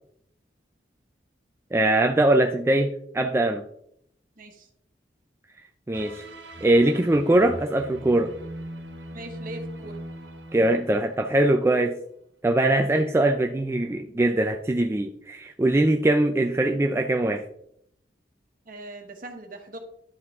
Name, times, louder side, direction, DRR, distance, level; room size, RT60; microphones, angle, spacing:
voice 1, 1.7-3.6 5.9-6.2 6.6-8.3 10.5-11.9 12.4-17.4, right 1 dB, 15° right, 4 dB, 0.3 m, -22 dB
voice 2, 4.4-4.7 9.1-10.0 18.7-19.8, right 1 dB, 50° right, 4 dB, 1.3 m, -40 dB
sound 1, 5.9-11.7, right 1 dB, 80° right, 1.1 m, -41 dB
11.0 x 4.8 x 3.6 m, 0.73 s
head